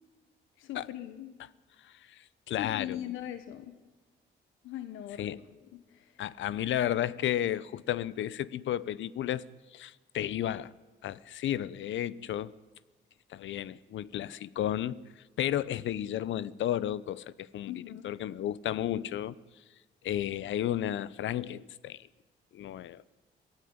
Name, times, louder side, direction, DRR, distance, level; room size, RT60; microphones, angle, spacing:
voice 1, 0.6-1.3 2.5-3.8 4.6-5.4 5.7-6.1 17.7-18.0, left 12 dB, 90° left, 1.4 m, -40 dB
voice 2, 1.8-3.0 5.2-5.4 6.2-9.4 9.7-10.7 11.0-12.5 13.3-15.0 15.4-19.4 20.0-22.1 22.5-23.0, left 11 dB, 70° left, 0.9 m, -33 dB
23.5 x 15.5 x 9.6 m
cardioid pair, 90°, 20 cm